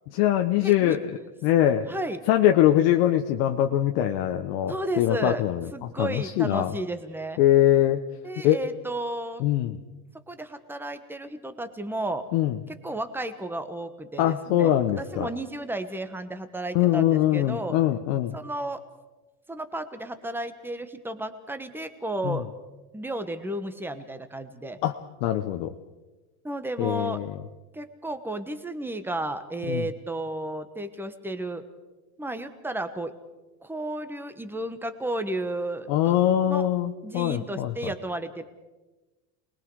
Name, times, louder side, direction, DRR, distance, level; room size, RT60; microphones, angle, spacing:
voice 1, 0.1-1.0 1.4-1.8 2.3-5.7 6.0-6.7 7.4-8.0 8.4-8.6 9.4-9.8 12.3-12.6 14.2-15.3 16.7-18.3 22.2-22.4 24.8-25.7 26.8-27.3 29.7-29.9 35.9-37.7, left 12 dB, 60° left, 4 dB, 1.1 m, -22 dB
voice 2, 0.6-1.0 1.9-2.2 4.7-5.4 5.7-7.4 8.2-9.4 10.3-12.2 12.7-17.8 18.3-18.8 19.5-22.5 22.9-24.8 26.4-27.2 27.7-31.6 32.2-33.1 33.6-36.2 36.5-36.7 37.0-38.4, right 1 dB, 5° right, 9 dB, 1.2 m, -33 dB
29.0 x 21.0 x 4.8 m, 1.2 s
supercardioid pair, 130°, 47 cm